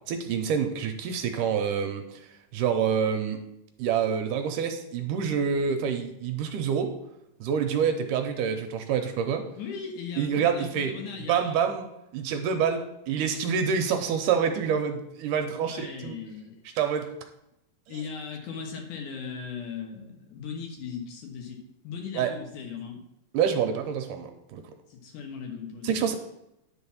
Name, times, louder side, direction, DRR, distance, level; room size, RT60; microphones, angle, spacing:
voice 1, 0.1-2.2 2.5-3.4 3.8-7.0 7.4-9.4 10.2-10.9 11.3-11.9 12.1-16.2 16.8-17.1 22.1-22.3 23.3-24.6 25.8-26.2, right 7 dB, 80° right, 6 dB, 2.1 m, -27 dB
voice 2, 9.6-11.6 15.6-16.6 17.9-23.0 24.9-25.9, left 6 dB, 70° left, 3 dB, 2.6 m, -38 dB
10.5 x 4.0 x 7.1 m, 0.85 s
omnidirectional pair, 4.0 m